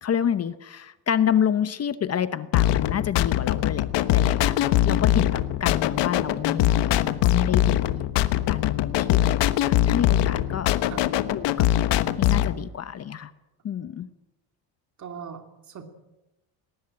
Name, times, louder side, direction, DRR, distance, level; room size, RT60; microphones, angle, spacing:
voice 1, 0.0-3.8 4.1-8.0 8.5-10.7 11.3-11.7 12.1-13.3 13.6-14.1, left 9 dB, 35° left, 13 dB, 0.9 m, -28 dB
sound 1, 2.5-12.5, left 13 dB, 75° left, 1.2 m, -22 dB
voice 2, 15.0-15.8, right 7 dB, 40° right, 6 dB, 2.8 m, -40 dB
19.5 x 18.5 x 8.8 m, 0.97 s
cardioid pair, 140°, 42 cm